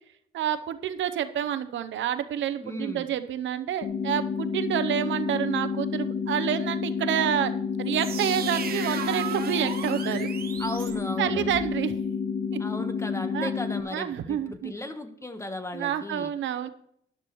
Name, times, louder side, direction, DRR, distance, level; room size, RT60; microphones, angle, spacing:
voice 1, 0.3-7.5 7.8-10.3 11.2-11.9 12.5-12.6 13.3-13.5 13.9-14.7 15.7-16.7, right 10 dB, 70° right, 11 dB, 0.7 m, -28 dB
voice 2, 2.6-3.1 10.6-11.5 12.6-16.3, left 1 dB, 15° left, 9 dB, 1.2 m, -36 dB
sound 1, 3.8-13.8, left 5 dB, 55° left, 1.5 m, -30 dB
sound 2, 7.9-11.7, right 7 dB, 50° right, 1.2 m, -36 dB
12.5 x 11.0 x 3.1 m, 0.71 s
cardioid pair, 90°, 20 cm